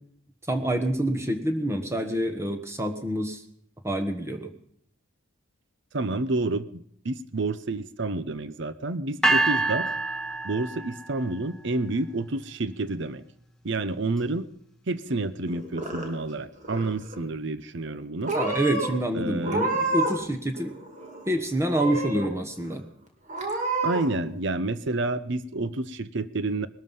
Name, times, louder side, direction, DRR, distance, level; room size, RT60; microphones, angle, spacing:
voice 1, 0.5-3.4 3.8-4.5 18.3-20.8 21.3-22.8, right 1 dB, 15° right, 6 dB, 1.3 m, -27 dB
voice 2, 5.9-9.9 10.4-13.2 13.6-14.5 14.9-18.3 19.1-19.7 23.8-26.7, right 2 dB, 55° right, 14 dB, 0.8 m, -29 dB
sound 1, 9.2-11.3, right 2 dB, 5° left, 1.9 m, -26 dB
Purr / Meow, 15.5-16.3 16.6-17.2 17.9-18.0 18.3-18.9 19.4-20.3 20.5-21.3 21.7-22.3 22.7-22.8 23.3-24.0, right 2 dB, 35° right, 2.9 m, -29 dB
20.0 x 13.0 x 5.6 m, 0.66 s
head